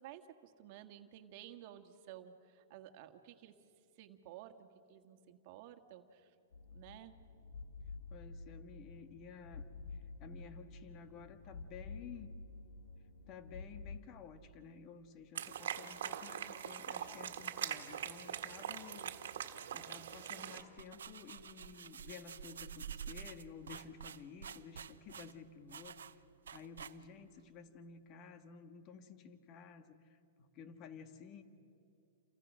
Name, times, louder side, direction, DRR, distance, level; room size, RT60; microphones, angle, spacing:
voice 1, 0.0-3.5 4.0-6.3 6.7-7.1, right 11 dB, 45° right, 6 dB, 1.8 m, -54 dB
sound 1, 6.5-14.0, left 3 dB, 85° left, 1.6 m, -50 dB
voice 2, 8.1-9.7 9.9-12.4 13.3-19.2 19.7-26.0 26.5-31.4, left 6 dB, 35° left, 8 dB, 1.8 m, -53 dB
sound 2, 15.3-20.6, right 9 dB, 75° right, 1.7 m, -42 dB
brushing boots, 20.4-27.3, right 8 dB, 90° right, 0.9 m, -49 dB
29.5 x 27.5 x 6.4 m, 2.6 s
hypercardioid pair, 140°, 0 cm